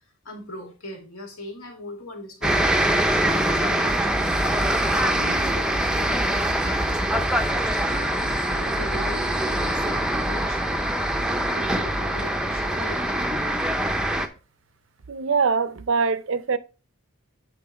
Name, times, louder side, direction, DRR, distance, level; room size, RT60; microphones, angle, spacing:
voice 1, 0.2-4.3 4.9-7.1 7.4-10.6 11.5-13.5, left 1 dB, 80° left, 2.4 m, -39 dB
sound 1, 2.4-14.3, right 1 dB, 5° right, 0.5 m, -23 dB
voice 2, 15.1-16.6, right 5 dB, 65° right, 0.5 m, -23 dB
7.8 x 4.4 x 4.1 m
head